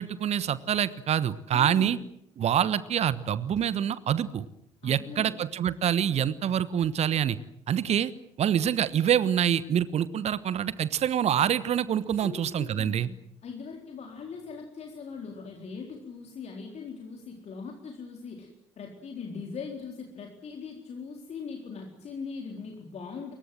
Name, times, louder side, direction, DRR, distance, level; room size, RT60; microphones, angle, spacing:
voice 1, 0.0-2.0 2.4-4.5 4.8-7.4 7.7-8.1 8.4-13.1, right 9 dB, 45° right, 17 dB, 1.2 m, -26 dB
voice 2, 1.5-2.0 4.8-5.4 12.2-13.2 13.4-18.5 18.8-23.3, left 5 dB, 45° left, 2 dB, 4.1 m, -40 dB
28.5 x 23.0 x 7.7 m, 0.75 s
figure-of-eight pair, 50°, 16 cm